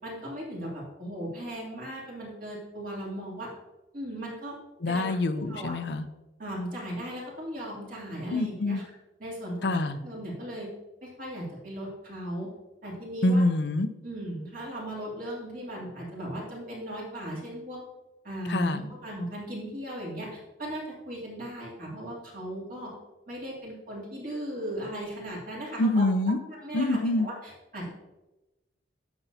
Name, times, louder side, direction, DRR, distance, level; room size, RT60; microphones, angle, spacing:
voice 1, 0.0-3.5 3.9-4.5 4.9-5.0 5.3-5.7 6.4-8.8 9.2-10.7 11.0-12.5 12.8-13.4 14.0-17.8 18.2-22.9 23.3-26.1 26.5-27.9, right 1 dB, 50° right, -4 dB, 2.7 m, -37 dB
voice 2, 4.8-6.1 8.3-8.8 9.6-10.0 13.2-13.9 18.5-18.8 25.8-26.4 26.7-27.3, left 2 dB, 60° left, 10 dB, 0.6 m, -25 dB
9.6 x 6.9 x 2.7 m, 1.0 s
head